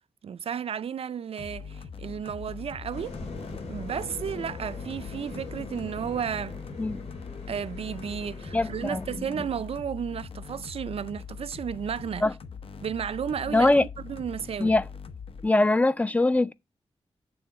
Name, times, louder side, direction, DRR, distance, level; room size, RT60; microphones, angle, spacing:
voice 1, 0.2-3.1 3.7-6.6 7.5-12.2 12.8-14.7, right 8 dB, 65° right, 0.4 m, -33 dB
sound 1, 1.4-15.5, left 6 dB, 60° left, 0.8 m, -42 dB
sound 2, 2.9-9.2, left 3 dB, 85° left, 3.6 m, -41 dB
voice 2, 8.5-9.0 12.2-12.3 13.5-13.8 14.6-14.8 15.4-16.5, left 2 dB, 15° left, 0.4 m, -22 dB
8.5 x 3.9 x 5.4 m
wide cardioid pair, 165°, 11 cm